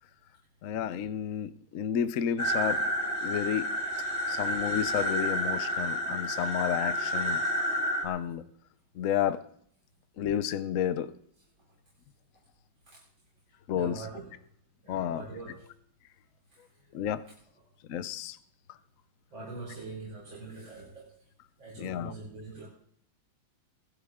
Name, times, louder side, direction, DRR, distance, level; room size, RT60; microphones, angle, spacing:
voice 1, 0.6-2.8 3.2-3.7 4.3-7.4 8.0-8.4 9.0-9.4 10.2-11.1 13.7-14.0 14.9-15.2 16.9-17.2 17.9-18.4 21.8-22.1, left 9 dB, 60° left, 13 dB, 0.8 m, -31 dB
sound 1, 2.4-8.1, equal, 35° left, 2.2 m, -30 dB
voice 2, 13.7-14.5 14.8-15.8 16.5-16.9 17.5-17.7 19.3-21.2 21.6-22.7, right 3 dB, 70° right, -6 dB, 4.9 m, -44 dB
20.5 x 11.5 x 3.6 m, 0.63 s
omnidirectional pair, 2.2 m